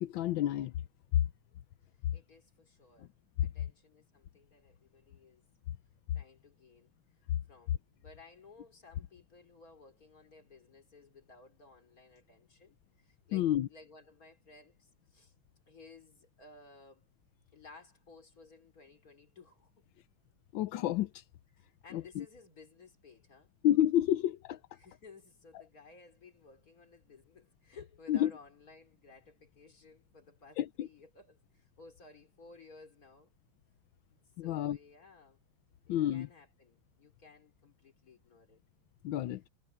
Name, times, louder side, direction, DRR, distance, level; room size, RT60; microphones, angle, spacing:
voice 1, 0.0-0.7 1.1-1.2 3.0-3.1 3.4-3.5 13.3-13.7 20.5-21.2 21.9-22.2 23.6-24.6 28.1-28.3 30.6-30.9 34.4-34.8 35.9-36.3 39.0-39.4, left 12 dB, 80° left, 1.4 m, -29 dB
voice 2, 2.1-3.1 3.4-5.4 6.1-6.9 7.5-15.3 15.7-17.1 17.5-19.9 21.5-23.5 24.8-33.3 34.1-35.4 35.9-38.6, left 3 dB, 45° left, 4.0 m, -57 dB
omnidirectional pair, 2.1 m